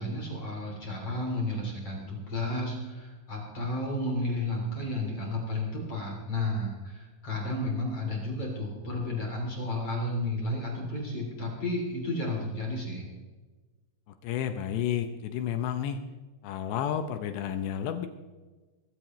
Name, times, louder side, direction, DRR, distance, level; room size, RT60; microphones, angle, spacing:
voice 1, 0.0-13.1, left 1 dB, 35° left, -1 dB, 3.2 m, -32 dB
voice 2, 14.2-16.0 16.4-18.1, left 9 dB, 85° left, 8 dB, 2.5 m, -31 dB
21.5 x 15.5 x 3.1 m, 1.3 s
omnidirectional pair, 6.0 m